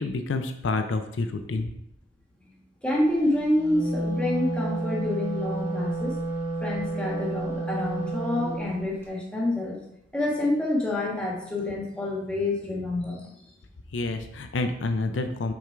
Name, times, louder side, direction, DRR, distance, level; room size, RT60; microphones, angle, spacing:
voice 1, 0.0-1.7 13.9-15.5, left 3 dB, 80° left, 7 dB, 0.5 m, -28 dB
voice 2, 2.8-6.2 6.6-9.8 10.1-13.3, left 1 dB, 5° left, -3 dB, 1.3 m, -27 dB
Wind instrument woodwind instrument, 3.5-8.7, right 2 dB, 15° right, 1.3 m, -30 dB
6.1 x 3.7 x 4.5 m, 0.78 s
head